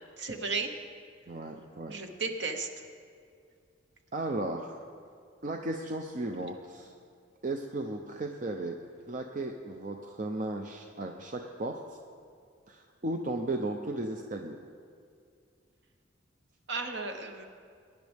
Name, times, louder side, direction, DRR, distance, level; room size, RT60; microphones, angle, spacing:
voice 1, 0.2-0.7 1.9-2.7 16.7-17.5, right 4 dB, 60° right, 5 dB, 1.1 m, -34 dB
voice 2, 1.3-1.9 4.1-4.8 5.4-6.9 7.4-8.8 9.1-11.8 12.7-14.6, right 2 dB, 40° right, 3 dB, 0.6 m, -35 dB
22.5 x 10.5 x 3.5 m, 2.3 s
head